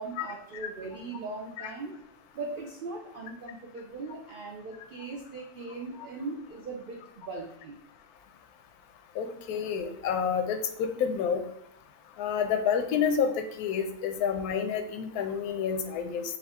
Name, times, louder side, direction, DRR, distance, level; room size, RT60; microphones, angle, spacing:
voice 1, 0.0-2.0 2.3-7.8, right 3 dB, 75° right, 0 dB, 0.5 m, -39 dB
voice 2, 9.2-11.4 12.2-13.3 13.6-16.2, left 7 dB, 80° left, 7 dB, 1.1 m, -29 dB
4.9 x 2.6 x 3.5 m, 0.74 s
omnidirectional pair, 1.6 m